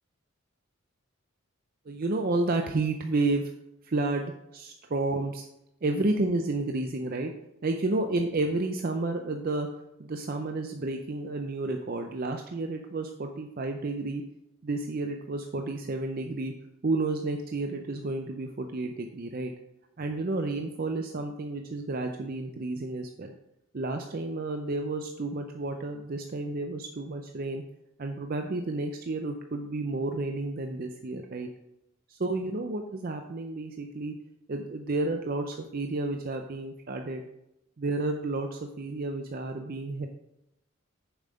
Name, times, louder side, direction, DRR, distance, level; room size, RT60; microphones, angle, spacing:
voice 1, 1.9-3.5 3.8-5.4 5.8-7.3 7.6-9.7 10.0-14.2 14.6-16.5 16.8-19.5 20.0-23.3 23.7-27.6 28.0-31.5 32.1-34.1 34.5-37.2 37.8-40.1, right 2 dB, 45° right, 5 dB, 0.5 m, -31 dB
7.1 x 5.6 x 5.0 m, 0.86 s
head